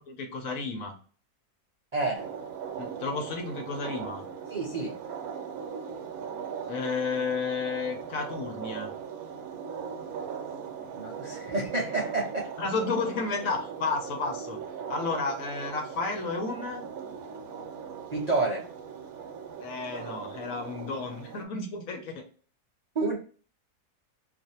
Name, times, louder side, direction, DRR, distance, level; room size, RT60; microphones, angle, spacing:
voice 1, 0.1-0.9 2.8-4.3 6.7-8.9 12.6-14.6 14.9-16.9 19.6-22.3, left 4 dB, 65° left, 1.0 m, -32 dB
voice 2, 1.9-2.3 4.5-5.0 10.9-12.5 18.1-18.7 23.0-23.1, right 3 dB, 55° right, 0.4 m, -29 dB
sound 1, 2.1-21.4, right 7 dB, 70° right, 1.1 m, -39 dB
2.5 x 2.5 x 4.1 m
omnidirectional pair, 1.7 m